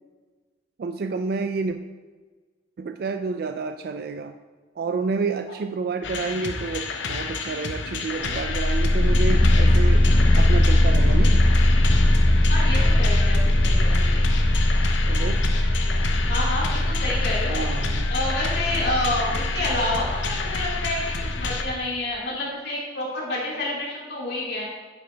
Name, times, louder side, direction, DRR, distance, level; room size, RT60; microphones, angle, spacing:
voice 1, 0.8-1.8 2.8-4.4 4.8-10.0 10.3-11.4 15.1-15.4 17.4-18.1, right 4 dB, 55° right, 7 dB, 0.3 m, -29 dB
sound 1, 6.0-21.6, left 4 dB, 80° left, 0.8 m, -31 dB
sound 2, 8.2-21.7, left 1 dB, 25° left, 0.6 m, -20 dB
voice 2, 12.5-14.2 16.3-17.7 18.1-24.6, left 1 dB, 55° left, -5 dB, 2.7 m, -29 dB
8.9 x 7.8 x 3.3 m, 1.4 s
head